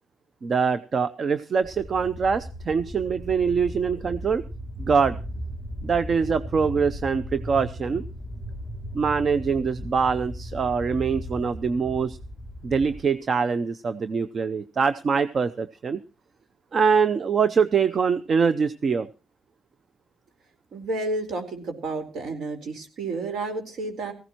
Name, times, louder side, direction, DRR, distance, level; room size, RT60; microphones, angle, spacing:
voice 1, 0.4-4.4 4.8-5.2 5.8-8.0 8.9-12.2 12.6-16.0 16.7-19.1, right 5 dB, 45° right, 14 dB, 0.7 m, -24 dB
sound 1, 1.6-13.0, equal, 10° right, 3.9 m, -37 dB
voice 2, 20.7-24.1, right 2 dB, 65° right, 5 dB, 4.3 m, -31 dB
19.0 x 15.5 x 3.0 m, 0.34 s
cardioid pair, 90°, 0 cm